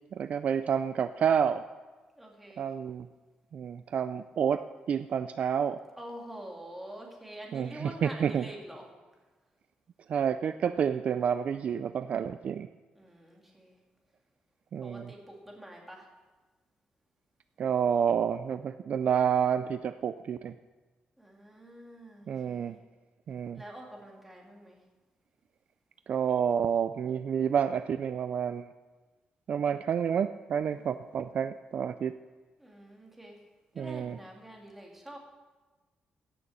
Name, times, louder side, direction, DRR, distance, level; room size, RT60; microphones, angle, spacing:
voice 1, 0.1-1.7 2.6-3.1 3.5-5.8 7.5-8.5 10.1-12.7 14.7-15.1 17.6-20.5 22.3-22.8 23.3-23.6 26.1-28.7 29.5-32.1 33.8-34.2, right 8 dB, 50° right, 11 dB, 0.3 m, -29 dB
voice 2, 2.2-2.6 6.0-8.9 13.0-13.8 14.8-16.1 21.2-22.8 23.5-24.8 30.7-31.1 32.6-33.4 33.7-35.2, right 1 dB, 5° right, 0 dB, 2.1 m, -46 dB
15.5 x 6.8 x 6.3 m, 1.3 s
wide cardioid pair, 155°, 3 cm